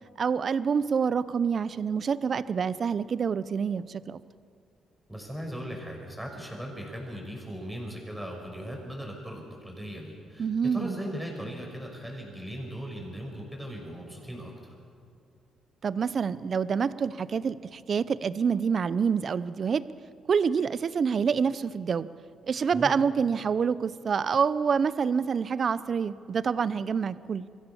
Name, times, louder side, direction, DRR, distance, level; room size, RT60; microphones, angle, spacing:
voice 1, 0.2-4.2 10.4-11.0 15.8-19.8 20.3-22.1 22.5-27.5, right 6 dB, 50° right, 16 dB, 0.7 m, -27 dB
voice 2, 5.1-14.7 22.7-22.9, equal, 5° right, 0 dB, 5.7 m, -38 dB
23.0 x 16.0 x 7.0 m, 2.4 s
cardioid pair, 90°, 0 cm